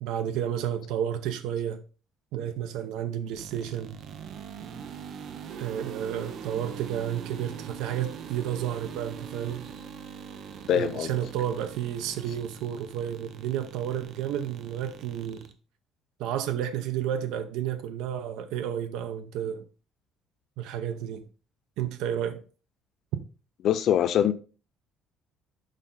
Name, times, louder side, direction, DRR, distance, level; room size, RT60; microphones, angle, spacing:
voice 1, 0.0-1.8 2.3-4.0 5.6-9.7 10.7-15.5 16.2-19.6 20.6-21.2 21.8-22.4, right 10 dB, 85° right, 0.7 m, -31 dB
sound 1, 3.3-15.5, right 7 dB, 50° right, 0.7 m, -42 dB
voice 2, 10.7-11.1 23.6-24.3, left 10 dB, 50° left, 0.4 m, -23 dB
6.5 x 5.3 x 3.8 m
cardioid pair, 160°, 0 cm